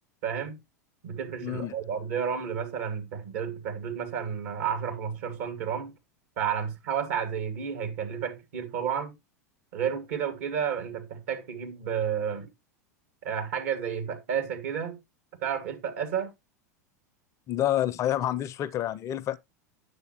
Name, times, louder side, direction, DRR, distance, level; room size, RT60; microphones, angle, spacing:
voice 1, 0.2-0.6 1.0-5.9 6.4-9.1 9.7-12.5 13.2-15.0 15.4-16.3, right 8 dB, 60° right, 2.1 m, -31 dB
voice 2, 1.4-1.7 17.5-19.4, left 12 dB, 35° left, 0.5 m, -28 dB
9.6 x 6.8 x 2.9 m
figure-of-eight pair, 85°, 9 cm